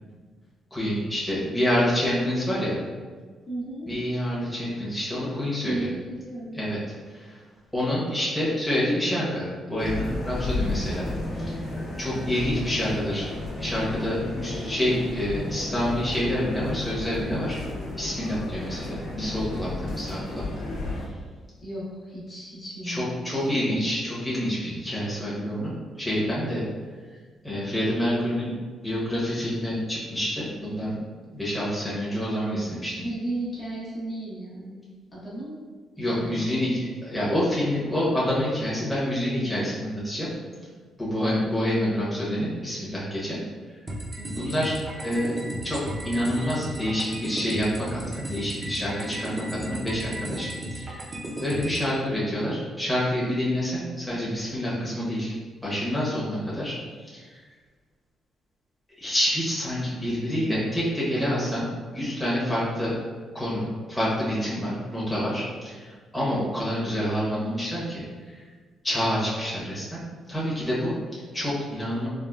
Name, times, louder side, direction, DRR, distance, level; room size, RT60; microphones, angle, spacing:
voice 1, 0.7-2.8 3.8-5.9 6.5-6.8 7.1-7.4 7.7-11.1 11.4-11.6 12.0-13.3 13.6-17.6 18.0-20.6 22.8-26.6 27.4-28.5 28.8-31.0 31.3-33.1 36.0-40.3 41.0-43.4 44.4-44.7 45.0-45.3 45.6-51.0 51.4-55.3 55.6-57.4 59.0-61.7 61.9-62.9 63.3-68.4 68.8-70.0 70.3-72.1, equal, 5° left, -8 dB, 0.9 m, -27 dB
voice 2, 3.5-3.9 5.6-6.6 21.6-23.4 23.7-24.0 33.0-34.8 35.1-35.5 36.0-36.8 44.2-44.5, right 1 dB, 40° left, -7 dB, 1.0 m, -35 dB
sound 1, 9.8-21.1, left 2 dB, 70° left, 0.9 m, -33 dB
sound 2, 43.9-51.9, right 1 dB, 30° right, 0.6 m, -35 dB
3.5 x 2.2 x 2.3 m, 1.5 s
cardioid pair, 90°, 0 cm